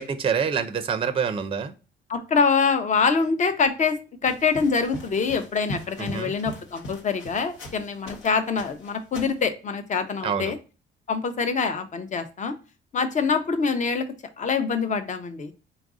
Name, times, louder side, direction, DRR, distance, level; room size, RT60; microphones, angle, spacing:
voice 1, 0.0-1.7 6.0-6.3 10.2-10.5, right 6 dB, 30° right, 10 dB, 0.4 m, -26 dB
voice 2, 2.1-10.6 11.1-12.5 12.9-14.1 14.4-15.5, left 5 dB, 40° left, 9 dB, 0.7 m, -25 dB
sound 1, 4.2-8.3 8.6-9.5, equal, 85° left, 1.0 m, -40 dB
4.0 x 2.5 x 3.6 m, 0.33 s
cardioid pair, 90°, 20 cm